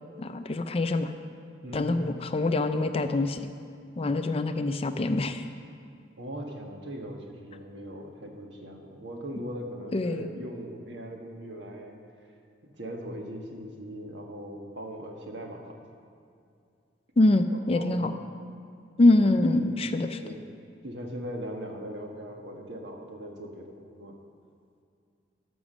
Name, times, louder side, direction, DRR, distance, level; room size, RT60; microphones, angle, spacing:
voice 1, 0.2-1.1 1.7-3.5 4.0-5.4 9.9-10.3 17.2-18.1 19.0-20.2, left 2 dB, 30° left, 8 dB, 0.5 m, -24 dB
voice 2, 1.6-2.0 6.2-12.0 12.6-15.8 17.5-18.0 19.2-19.7 20.2-20.4 20.8-24.2, equal, 70° right, 1 dB, 1.4 m, -40 dB
13.0 x 6.2 x 6.2 m, 2.4 s
head